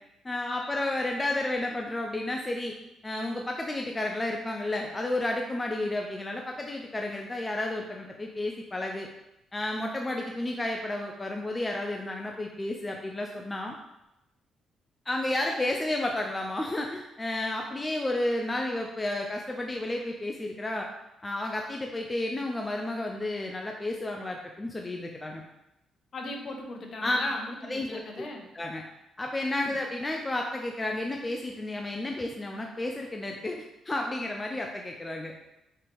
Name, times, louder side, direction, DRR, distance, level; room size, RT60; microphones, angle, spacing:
voice 1, 0.2-2.7 3.0-9.1 9.5-13.7 15.1-20.9 21.2-25.4 27.0-27.2 27.7-28.2 28.5-28.8 29.2-35.3, left 1 dB, 20° left, 1 dB, 0.6 m, -32 dB
voice 2, 26.1-28.5 29.6-29.8, left 2 dB, 50° left, 2 dB, 1.2 m, -38 dB
5.6 x 3.4 x 5.3 m, 0.88 s
cardioid pair, 90°, 0 cm